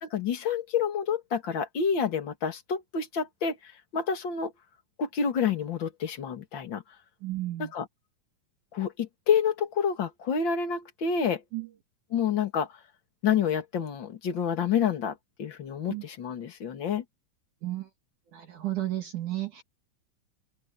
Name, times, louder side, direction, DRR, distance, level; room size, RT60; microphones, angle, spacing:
voice 1, 0.0-4.5 5.0-6.8 7.6-7.9 8.7-11.4 12.1-12.7 13.2-17.0, left 7 dB, 35° left, 2.6 m, -28 dB
voice 2, 7.2-7.7 11.5-11.7 15.9-16.0 17.6-17.9 18.3-19.6, right 15 dB, 60° right, 3.3 m, -33 dB
omnidirectional pair, 4.1 m